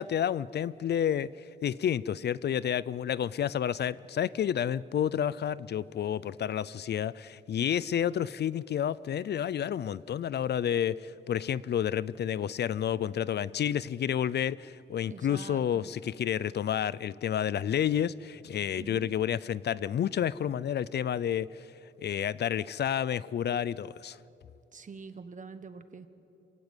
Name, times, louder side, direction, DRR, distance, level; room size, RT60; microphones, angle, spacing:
voice 1, 0.0-21.5 22.0-24.2, left 9 dB, 65° left, 19 dB, 0.5 m, -30 dB
voice 2, 15.1-15.9 18.8-19.1 24.7-26.1, right 5 dB, 40° right, 10 dB, 1.3 m, -45 dB
26.5 x 16.0 x 9.1 m, 3.0 s
wide cardioid pair, 125°, 19 cm